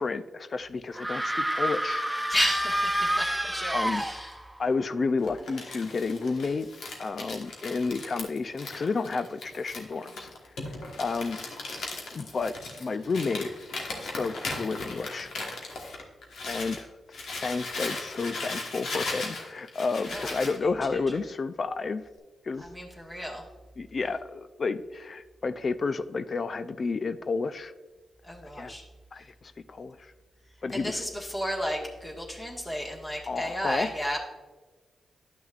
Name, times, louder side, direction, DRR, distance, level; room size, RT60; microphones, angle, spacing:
voice 1, 0.0-2.1 3.7-4.0 4.6-6.7 7.0-10.3 11.0-11.4 12.1-12.5 12.8-13.5 14.0-15.3 16.5-16.9 17.4-22.0 22.4-22.7 23.8-27.7 28.6-28.7 29.1-30.1 30.6-31.0 33.3-33.9, left 4 dB, 50° left, 11 dB, 0.4 m, -31 dB
sound 1, 0.9-4.6, right 1 dB, 10° right, 0.5 m, -29 dB
voice 2, 2.3-4.4 20.0-20.3 20.6-20.7 22.6-23.4 28.2-28.8 30.7-34.2, equal, 25° left, -3 dB, 1.7 m, -32 dB
Crumpling crinkling, 5.2-16.8 17.1-20.6, left 3 dB, 80° left, 1.3 m, -37 dB
10.5 x 6.0 x 2.4 m, 1.3 s
cardioid pair, 55°, 0 cm